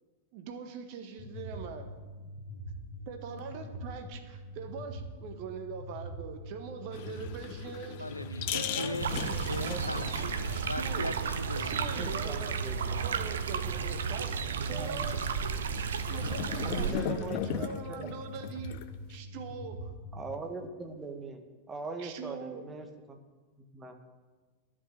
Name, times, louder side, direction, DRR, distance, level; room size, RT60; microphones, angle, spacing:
voice 1, 0.3-1.9 3.1-8.0 8.5-9.5 10.5-11.2 11.6-12.8 13.0-15.2 16.1-18.8 19.1-19.9 22.0-22.6, right 5 dB, 45° right, 6 dB, 1.4 m, -42 dB
sound 1, 1.2-20.2, equal, 90° right, 2.4 m, -44 dB
sound 2, 6.9-19.1, left 10 dB, 50° left, 0.7 m, -40 dB
voice 2, 8.0-12.1, left 1 dB, 85° left, 12 dB, 0.6 m, -39 dB
sound 3, 9.0-16.9, right 6 dB, 65° right, 0.8 m, -33 dB
voice 3, 11.9-12.9 14.7-15.1 16.6-18.1 20.1-21.4 21.7-23.2 23.7-24.0, right 3 dB, 15° right, 5 dB, 1.5 m, -41 dB
11.0 x 6.2 x 9.1 m, 1.3 s
figure-of-eight pair, 90°, 0 cm